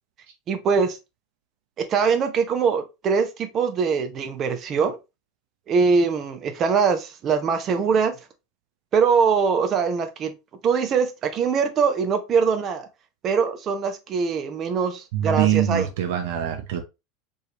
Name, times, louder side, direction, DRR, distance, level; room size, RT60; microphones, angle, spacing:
voice 1, 0.5-1.0 1.9-5.0 5.7-8.1 8.9-10.3 10.6-12.9 13.2-15.9, right 5 dB, 40° right, 0.9 m, -22 dB
voice 2, 15.1-16.8, right 10 dB, 70° right, 0.7 m, -23 dB
4.5 x 3.3 x 3.0 m
hypercardioid pair, 90°, 0 cm